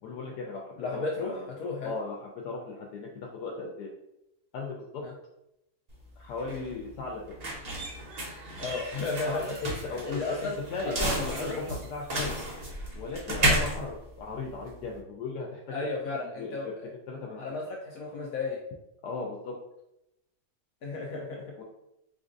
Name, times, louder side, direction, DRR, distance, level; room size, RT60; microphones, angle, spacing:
voice 1, 0.0-1.5 1.8-3.9 4.5-5.0 6.2-7.2 9.2-10.9 11.3-12.4 13.0-15.7 16.1-16.7 17.1-17.4 19.0-19.5 21.6-21.7, left 3 dB, 90° left, 0 dB, 1.2 m, -37 dB
voice 2, 0.8-1.9 5.0-5.1 8.6-9.6 9.9-10.6 10.8-11.6 13.4-13.6 15.7-16.8 17.4-18.6 20.8-21.6, left 3 dB, 70° left, -1 dB, 0.9 m, -34 dB
sound 1, 5.9-15.0, right 1 dB, 65° right, 0.4 m, -32 dB
4.4 x 2.5 x 2.5 m, 0.86 s
omnidirectional pair, 1.7 m